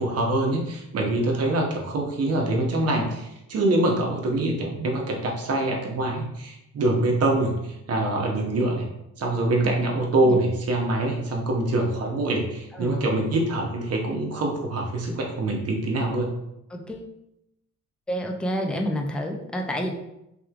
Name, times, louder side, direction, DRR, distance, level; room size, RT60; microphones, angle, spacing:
voice 1, 0.0-8.9 9.2-16.3, right 2 dB, 55° right, 1 dB, 0.9 m, -24 dB
voice 2, 12.7-13.1 16.7-17.1 18.1-19.9, equal, 5° left, 2 dB, 0.4 m, -29 dB
3.5 x 3.0 x 2.4 m, 0.86 s
cardioid pair, 90°, 30 cm